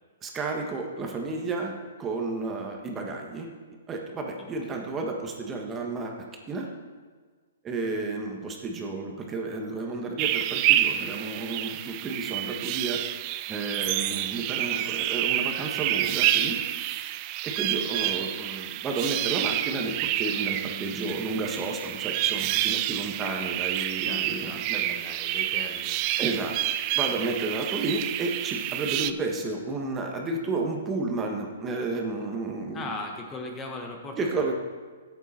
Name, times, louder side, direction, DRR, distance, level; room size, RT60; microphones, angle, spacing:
voice 1, 0.2-3.5 3.9-6.2 6.5-6.7 7.6-13.0 13.5-16.6 17.4-24.8 26.2-26.5 26.9-32.9 34.2-34.5, right 3 dB, 20° right, 2 dB, 1.4 m, -32 dB
voice 2, 4.4-4.9 20.6-21.3 24.0-26.2 32.7-34.3, left 2 dB, 20° left, 2 dB, 1.2 m, -39 dB
sound 1, 10.2-29.1, right 13 dB, 35° right, 0.4 m, -28 dB
11.5 x 8.2 x 4.4 m, 1.5 s
hypercardioid pair, 135°, 0 cm